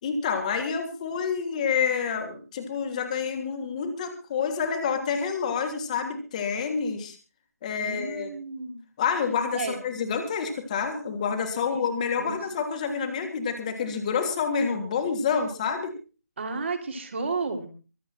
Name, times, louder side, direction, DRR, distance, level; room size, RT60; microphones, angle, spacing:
voice 1, 0.0-7.2 7.6-8.3 9.0-15.9, left 6 dB, 25° left, 5 dB, 3.1 m, -28 dB
voice 2, 7.8-8.8 9.5-9.8 12.2-12.4 16.4-17.7, right 4 dB, 45° right, 5 dB, 3.1 m, -32 dB
24.0 x 8.8 x 4.4 m, 0.36 s
figure-of-eight pair, 150°, 9 cm